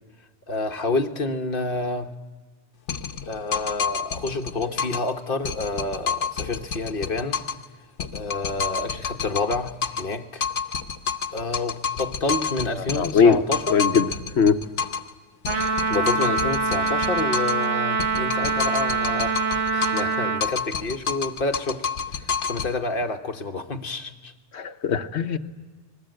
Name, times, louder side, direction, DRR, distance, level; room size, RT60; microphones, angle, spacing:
voice 1, 0.5-2.1 3.2-7.4 8.1-10.5 11.3-13.8 15.5-24.3, left 3 dB, 50° left, 1.3 m, -29 dB
sound 1, 2.9-5.1 5.5-7.7 8.0-10.2 10.4-15.1 15.5-17.7 18.0-20.1 20.4-22.7, left 6 dB, 90° left, 1.3 m, -29 dB
voice 2, 12.9-13.4 13.7-14.1 14.4-14.6 24.5-25.4, left 6 dB, 70° left, 1.2 m, -19 dB
Trumpet, 15.5-20.5, right 4 dB, 80° right, 1.9 m, -24 dB
30.0 x 20.5 x 7.8 m
omnidirectional pair, 1.2 m